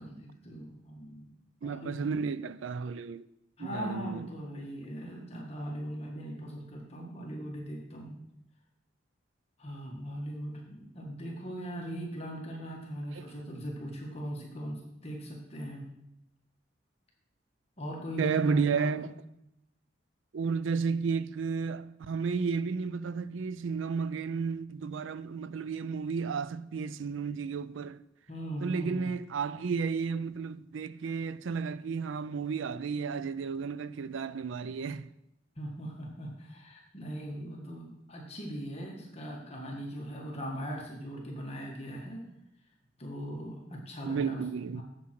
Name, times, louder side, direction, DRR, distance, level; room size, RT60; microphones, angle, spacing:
voice 1, 0.0-1.3 1.6-2.0 3.6-8.2 9.6-15.9 17.8-19.1 28.3-29.1 35.5-42.2 43.0-44.4 44.7-44.8, equal, 35° left, 1.6 m, -40 dB
voice 2, 1.6-3.2 3.6-4.3 18.2-19.1 20.3-28.0 28.6-35.1 44.0-44.8, right 5 dB, 80° right, 0.4 m, -32 dB
7.6 x 7.5 x 5.9 m
head